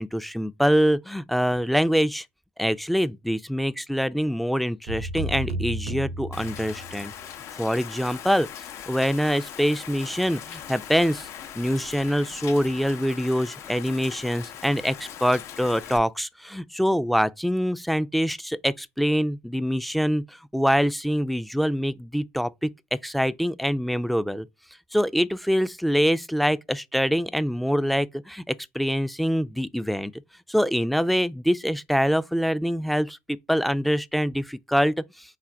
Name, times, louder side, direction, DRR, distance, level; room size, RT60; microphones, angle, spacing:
voice 1, 0.0-2.3 2.6-7.1 7.5-8.5 8.9-11.3 11.6-24.5 24.9-30.1 30.5-35.4, equal, ahead, 0.3 m, -25 dB
sound 1, 4.9-7.1, right 2 dB, 90° right, 0.6 m, -32 dB
Rain, 6.3-16.0, left 9 dB, 60° left, 0.7 m, -40 dB
3.9 x 2.5 x 4.4 m
supercardioid pair, 90°, 5 cm